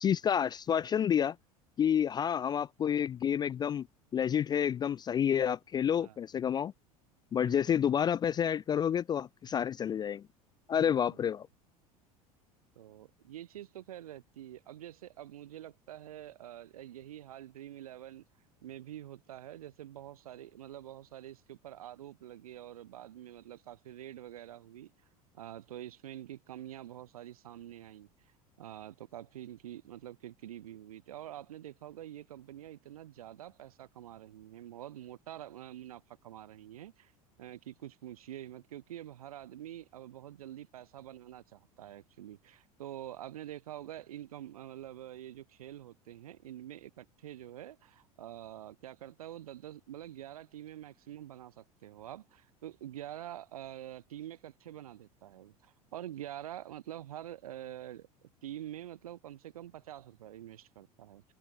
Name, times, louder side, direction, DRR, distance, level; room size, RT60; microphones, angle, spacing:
voice 1, 0.0-1.4 1.8-3.9 4.1-6.7 7.3-10.2 10.7-11.5, left 8 dB, 20° left, 0.4 m, -29 dB
voice 2, 7.4-7.8 10.7-11.2 12.7-18.2 18.6-24.9 25.3-28.1 28.6-37.1 37.4-61.2, right 12 dB, 70° right, 3.2 m, -46 dB
figure-of-eight pair, 75°, 19 cm